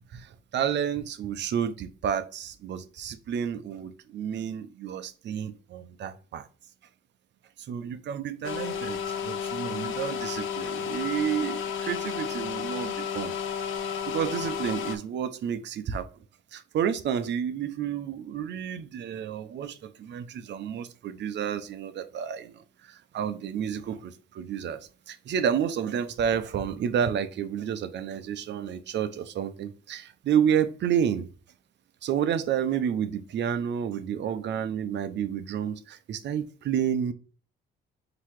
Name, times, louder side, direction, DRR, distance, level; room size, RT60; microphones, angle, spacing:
voice 1, 0.1-6.5 7.7-13.3 14.1-16.1 16.5-31.3 32.0-37.1, right 8 dB, 65° right, 11 dB, 0.6 m, -30 dB
sound 1, 8.4-15.0, left 7 dB, 80° left, 0.7 m, -32 dB
3.9 x 2.8 x 4.6 m, 0.38 s
cardioid pair, 90°, 20 cm